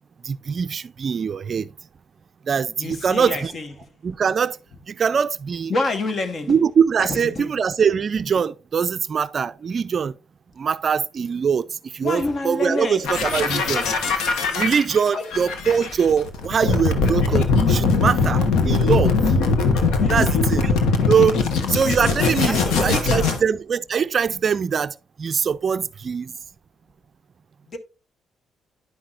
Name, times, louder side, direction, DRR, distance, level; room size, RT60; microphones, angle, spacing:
voice 1, 0.3-1.7 2.5-3.5 4.0-4.6 4.9-5.7 6.5-10.1 10.6-11.6 11.9-13.8 14.5-19.1 20.1-20.7 21.1-21.4 21.7-24.9 25.2-26.3, right 6 dB, 45° right, 0.4 m, -22 dB
voice 2, 2.8-3.7 5.7-6.6 7.0-7.5 12.0-13.1 15.1-15.3 20.0-20.4 21.3-21.4 22.5-23.3 27.7-27.8, left 2 dB, 45° left, 1.1 m, -28 dB
sound 1, 13.0-23.4, left 4 dB, 85° left, 1.2 m, -21 dB
10.0 x 5.9 x 2.5 m
cardioid pair, 90°, 0 cm